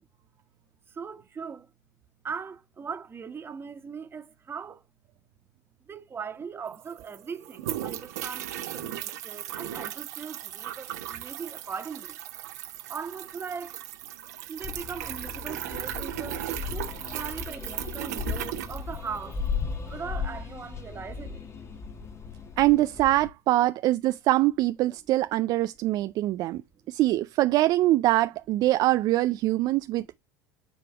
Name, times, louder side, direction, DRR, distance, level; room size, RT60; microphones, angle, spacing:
voice 1, 0.9-1.7 2.2-4.8 5.9-12.2 12.9-13.8 14.5-19.4 19.8-21.5, right 6 dB, 25° right, 1.5 m, -39 dB
sound 1, 6.4-6.5 6.7-19.5, right 12 dB, 75° right, 1.3 m, -37 dB
sound 2, 14.6-23.3, left 6 dB, 30° left, 1.5 m, -36 dB
voice 2, 22.6-26.6 26.9-30.2, right 16 dB, 50° right, 0.4 m, -23 dB
10.0 x 3.4 x 3.4 m
hypercardioid pair, 75°, 9 cm